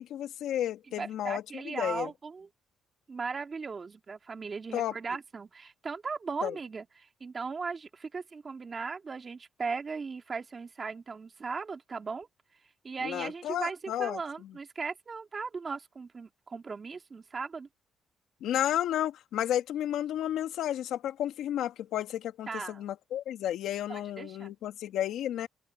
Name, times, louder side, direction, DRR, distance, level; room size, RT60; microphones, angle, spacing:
voice 1, 0.0-2.1 4.7-4.9 6.4-6.5 13.0-14.2 18.4-25.5, left 11 dB, 80° left, 2.4 m, -32 dB
voice 2, 0.9-2.5 3.1-12.3 12.8-17.7 22.5-22.8 23.9-24.5, right 4 dB, 35° right, 2.7 m, -38 dB
open air
cardioid pair, 90°, 0 cm